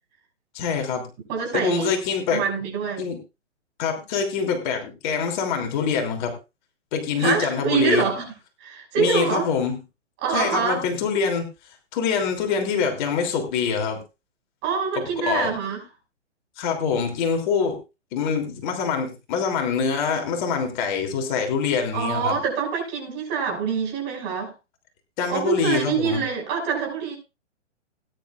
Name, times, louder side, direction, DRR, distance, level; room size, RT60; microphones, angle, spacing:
voice 1, 0.5-1.1 1.5-2.4 3.0-3.2 3.8-6.3 6.9-8.0 9.0-9.8 10.3-11.5 11.9-14.0 14.9-15.5 16.6-17.8 18.1-22.4 25.2-26.2, left 6 dB, 40° left, 3.2 m, -25 dB
voice 2, 1.3-1.9 2.3-3.1 7.2-8.3 8.6-9.5 10.2-10.8 14.6-15.8 21.9-24.5 25.3-27.2, right 6 dB, 30° right, 6.3 m, -25 dB
20.0 x 10.5 x 2.5 m
hypercardioid pair, 135°, 37 cm